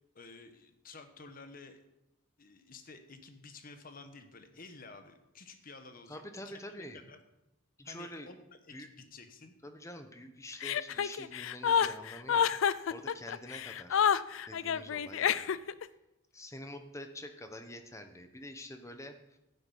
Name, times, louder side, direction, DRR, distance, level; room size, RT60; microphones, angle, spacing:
voice 1, 0.1-1.8 2.4-7.2 7.8-8.4 8.7-9.5, left 4 dB, 40° left, 8 dB, 1.1 m, -52 dB
voice 2, 6.1-7.0 7.8-8.3 8.7-8.9 9.6-14.1 14.5-15.5 16.3-19.4, left 1 dB, 15° left, 7 dB, 0.9 m, -47 dB
Chuckle chortle, 10.6-15.8, left 7 dB, 65° left, 0.4 m, -29 dB
12.0 x 9.2 x 5.5 m, 0.93 s
head